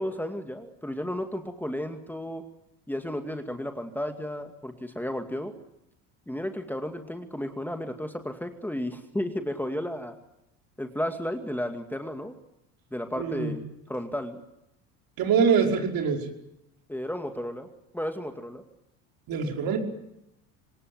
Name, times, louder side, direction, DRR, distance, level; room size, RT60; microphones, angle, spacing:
voice 1, 0.0-2.4 2.9-5.5 6.3-10.2 10.8-12.3 12.9-14.4 16.9-17.7 17.9-18.6, left 1 dB, 5° left, 6 dB, 2.3 m, -33 dB
voice 2, 13.2-13.5 15.2-16.3 19.3-19.8, right 6 dB, 55° right, 3 dB, 5.3 m, -24 dB
26.0 x 19.0 x 9.5 m, 0.83 s
supercardioid pair, 85°, 41 cm